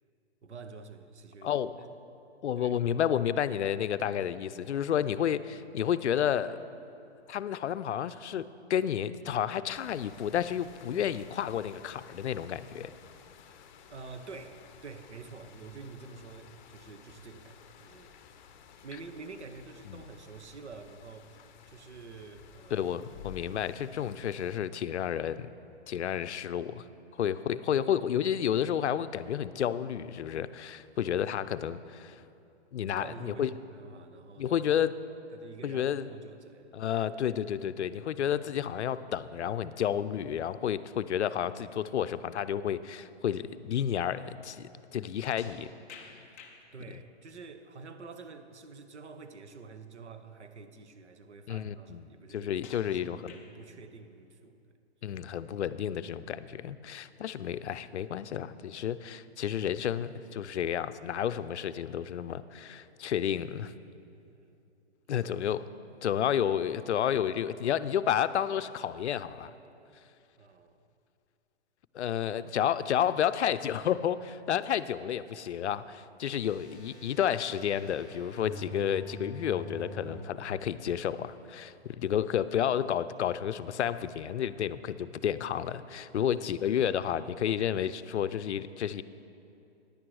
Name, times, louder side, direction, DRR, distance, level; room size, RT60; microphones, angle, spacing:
voice 1, 0.4-1.9 2.6-2.8 13.9-18.1 18.8-22.9 27.2-27.4 32.9-34.6 35.3-36.8 46.7-52.5 52.9-54.7 55.1-55.2 56.9-57.0 64.1-64.6 70.4-70.8 72.6-72.7 76.1-76.4 86.1-86.4, right 4 dB, 85° right, 9 dB, 0.9 m, -48 dB
voice 2, 1.4-1.7 2.4-6.6 7.3-12.9 19.9-20.0 22.7-25.5 25.9-26.8 27.2-32.2 32.7-33.5 34.4-34.9 35.6-36.1 36.7-45.7 46.0-46.1 51.5-52.0 52.3-53.3 55.0-63.7 65.1-65.7 66.0-69.5 71.9-89.0, left 9 dB, 85° left, 14 dB, 0.5 m, -31 dB
sound 1, 9.7-24.6, left 8 dB, 45° left, 0.7 m, -54 dB
sound 2, 45.4-46.6 49.5-49.6 50.3-50.4 52.6-53.7, left 5 dB, 15° left, 0.3 m, -50 dB
sound 3, 76.3-80.2 80.9-81.0, equal, 25° right, 2.8 m, -46 dB
10.0 x 8.8 x 4.8 m, 2.7 s
hypercardioid pair, 140°, 33 cm